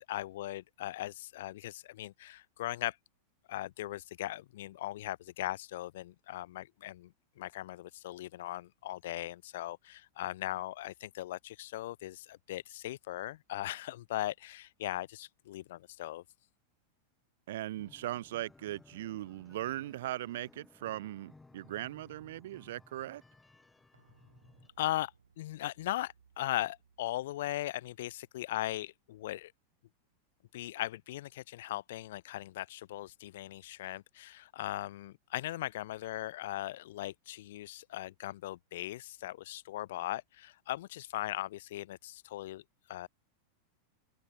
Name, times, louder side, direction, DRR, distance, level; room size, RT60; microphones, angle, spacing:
voice 1, 0.0-3.0 3.5-16.2 24.8-25.1 25.4-29.5 30.5-42.6 42.9-43.1, left 15 dB, 55° left, 0.3 m, -39 dB
voice 2, 17.5-23.2, right 14 dB, 55° right, 0.3 m, -39 dB
sound 1, 17.8-24.7, left 3 dB, 10° left, 1.0 m, -60 dB
sound 2, 23.9-29.6 29.9-30.0, right 6 dB, 70° right, 4.4 m, -69 dB
open air
figure-of-eight pair, 90°, 0 cm